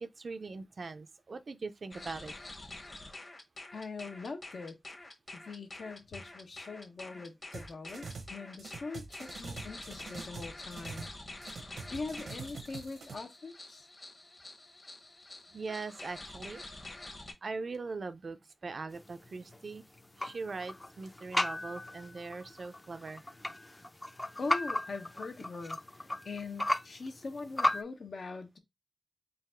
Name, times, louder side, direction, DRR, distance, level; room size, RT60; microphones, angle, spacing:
voice 1, 0.0-2.3 15.5-16.6 17.4-19.8 20.2-23.2, right 4 dB, 60° right, 0.5 m, -41 dB
sound 1, 1.9-17.3, left 2 dB, 40° left, 1.2 m, -47 dB
voice 2, 3.7-4.8 5.3-11.1 11.9-13.9 24.4-25.8 26.2-28.6, left 3 dB, 70° left, 0.9 m, -42 dB
sound 2, 7.5-8.3 8.6-11.2 11.4-13.1, right 4 dB, 85° right, 0.9 m, -44 dB
sound 3, 18.9-27.8, left 1 dB, 20° left, 0.5 m, -36 dB
3.9 x 2.4 x 4.4 m
wide cardioid pair, 80°, 0 cm